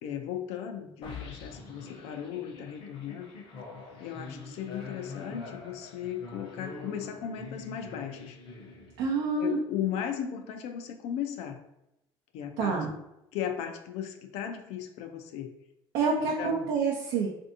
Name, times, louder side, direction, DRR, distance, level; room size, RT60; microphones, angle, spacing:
voice 1, 0.0-3.3 4.0-8.4 9.4-11.6 12.3-13.0 13.3-15.5 16.2-16.7, left 9 dB, 75° left, 6 dB, 0.4 m, -36 dB
sound 1, 1.0-9.3, left 4 dB, 55° left, 0.8 m, -44 dB
voice 2, 9.0-9.6 12.6-12.9 15.9-17.3, right 4 dB, 85° right, -2 dB, 0.6 m, -27 dB
3.3 x 2.6 x 2.6 m, 0.86 s
cardioid pair, 120°, 11 cm